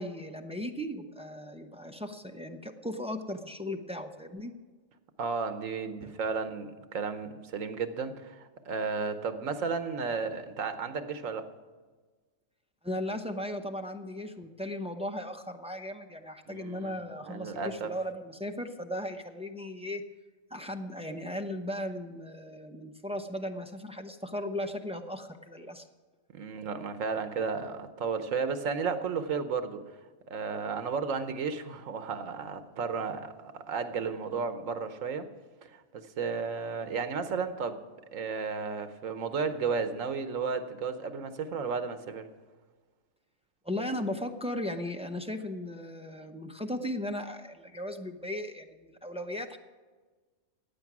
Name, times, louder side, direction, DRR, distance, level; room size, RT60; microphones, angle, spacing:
voice 1, 0.0-4.5 6.0-6.2 12.8-20.0 20.5-25.9 43.6-49.6, left 1 dB, 5° right, 5 dB, 0.5 m, -37 dB
voice 2, 5.2-11.5 16.5-17.0 17.2-17.9 26.3-29.8 30.3-35.3 35.6-37.8 38.1-42.3, right 5 dB, 80° right, 10 dB, 1.3 m, -33 dB
15.5 x 9.3 x 6.1 m, 1.4 s
omnidirectional pair, 1.3 m